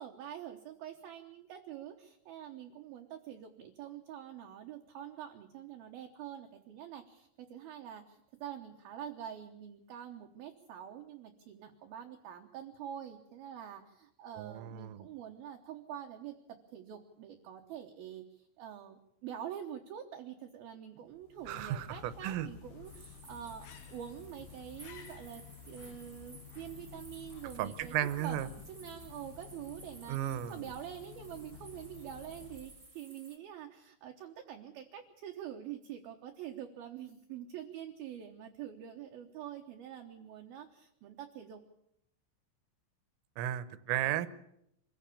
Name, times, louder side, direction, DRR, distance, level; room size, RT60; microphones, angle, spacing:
voice 1, 0.0-41.6, right 10 dB, 70° right, 3 dB, 2.4 m, -46 dB
voice 2, 14.4-15.1 21.5-22.5 27.6-28.5 30.1-30.6 43.4-44.3, right 12 dB, 85° right, 15 dB, 3.6 m, -34 dB
sound 1, 21.1-33.0, left 8 dB, 75° left, 3.7 m, -52 dB
sound 2, 22.8-33.4, right 2 dB, 50° right, 0.4 m, -57 dB
24.5 x 15.5 x 8.5 m, 0.77 s
omnidirectional pair, 5.8 m